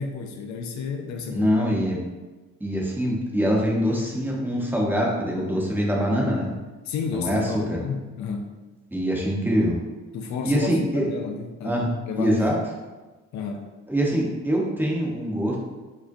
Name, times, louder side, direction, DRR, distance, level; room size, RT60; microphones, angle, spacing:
voice 1, 0.0-1.5 6.9-8.5 10.1-12.4 13.3-13.7, left 5 dB, 70° left, 4 dB, 0.5 m, -31 dB
voice 2, 1.3-2.0 2.6-6.5 7.1-7.6 8.9-9.8 10.4-11.1 11.6-11.9 12.2-12.5 13.9-15.6, equal, 5° right, -3 dB, 0.8 m, -24 dB
5.1 x 2.1 x 2.6 m, 1.2 s
cardioid pair, 90°, 30 cm